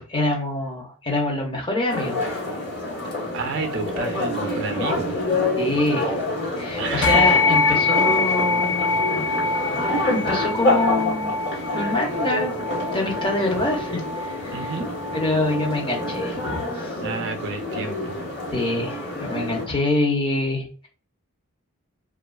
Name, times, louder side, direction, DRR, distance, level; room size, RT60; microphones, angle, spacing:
voice 1, 0.0-2.2 5.6-6.2 6.6-9.3 9.8-11.3 11.7-12.7 12.9-14.7 15.1-16.9 18.5-20.9, left 2 dB, 20° left, 0 dB, 0.6 m, -25 dB
sound 1, 1.9-19.7, left 2 dB, 50° left, 1.1 m, -27 dB
voice 2, 3.3-5.2 6.8-7.4 14.5-14.9 17.0-18.2, right 4 dB, 55° right, 5 dB, 0.5 m, -30 dB
sound 2, 7.0-16.7, left 3 dB, 75° left, 0.3 m, -25 dB
2.7 x 2.3 x 2.2 m, 0.37 s
head